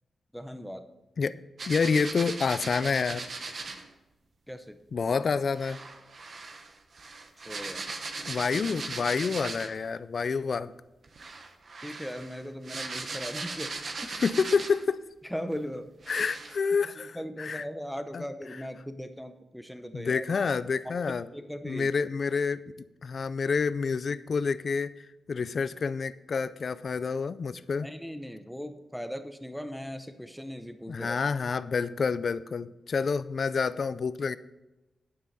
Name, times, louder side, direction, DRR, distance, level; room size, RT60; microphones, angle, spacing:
voice 1, 0.3-0.9 3.7-3.8 4.5-4.8 7.4-7.9 11.8-13.7 14.0-14.1 15.3-15.9 16.8-20.3 21.3-21.9 27.8-31.2, equal, ahead, 8 dB, 0.7 m, -38 dB
sound 1, 1.6-3.9 5.5-9.9 11.0-14.9 15.5-15.6 16.0-16.6, right 3 dB, 45° right, 1.1 m, -38 dB
voice 2, 1.7-3.3 4.9-5.8 8.3-10.7 14.2-15.0 16.1-17.6 18.1-18.2 19.9-21.3 21.6-22.6 23.0-24.9 25.3-27.9 30.9-34.4, left 5 dB, 45° left, 16 dB, 0.4 m, -28 dB
10.5 x 9.2 x 4.0 m, 1.0 s
wide cardioid pair, 180°, 0 cm